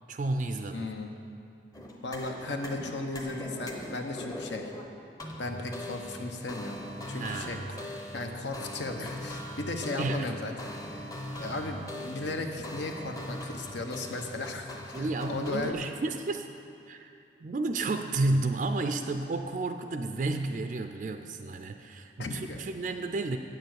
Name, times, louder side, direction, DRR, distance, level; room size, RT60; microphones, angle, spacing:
voice 1, 0.1-0.9 7.1-7.6 10.0-10.3 11.2-11.4 14.9-16.5 16.9-23.4, right 2 dB, 45° right, 6 dB, 0.3 m, -32 dB
voice 2, 0.7-1.1 2.0-4.7 5.4-6.8 7.1-7.8 8.1-15.7 22.2-22.6, left 2 dB, 75° left, 4 dB, 0.9 m, -36 dB
sound 1, 1.7-15.7, left 1 dB, 20° left, 0.8 m, -41 dB
8.8 x 6.8 x 7.9 m, 2.5 s
head